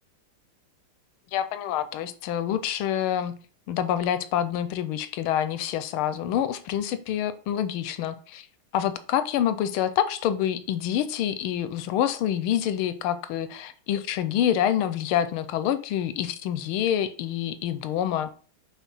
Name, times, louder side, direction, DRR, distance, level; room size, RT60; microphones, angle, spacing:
voice 1, 1.3-3.3 3.7-8.5 8.7-18.3, left 10 dB, 90° left, 12 dB, 1.5 m, -27 dB
6.3 x 3.8 x 5.5 m, 0.41 s
omnidirectional pair, 2.3 m